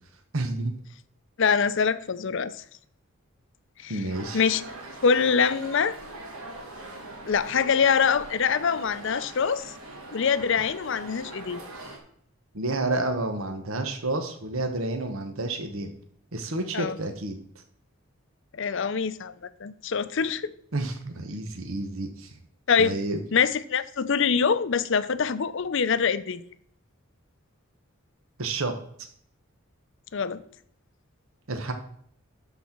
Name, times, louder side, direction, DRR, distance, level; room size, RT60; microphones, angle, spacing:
voice 1, 0.3-0.7 3.9-4.4 12.5-15.9 16.3-17.4 20.7-22.3 22.8-23.2 28.4-28.7 29.0-29.1 31.5-31.7, right 2 dB, 75° right, 1.1 m, -30 dB
voice 2, 1.4-2.5 3.8-4.0 4.3-4.6 5.0-5.9 7.3-9.7 10.1-11.6 16.7-17.0 18.5-20.5 22.7-23.0 23.3-26.4 30.1-30.4, left 6 dB, 60° left, 0.6 m, -24 dB
sound 1, 4.1-12.0, right 2 dB, 90° right, 2.4 m, -42 dB
12.5 x 4.2 x 5.9 m
head